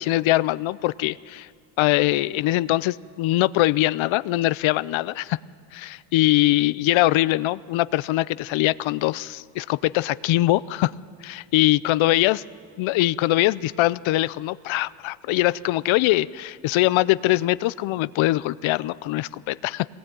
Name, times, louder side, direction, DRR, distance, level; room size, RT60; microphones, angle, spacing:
voice 1, 0.0-1.5 1.8-5.4 5.7-10.9 11.2-12.4 12.8-19.9, left 17 dB, 75° left, 19 dB, 0.6 m, -22 dB
22.0 x 19.5 x 9.1 m, 2.3 s
cardioid pair, 155°, 47 cm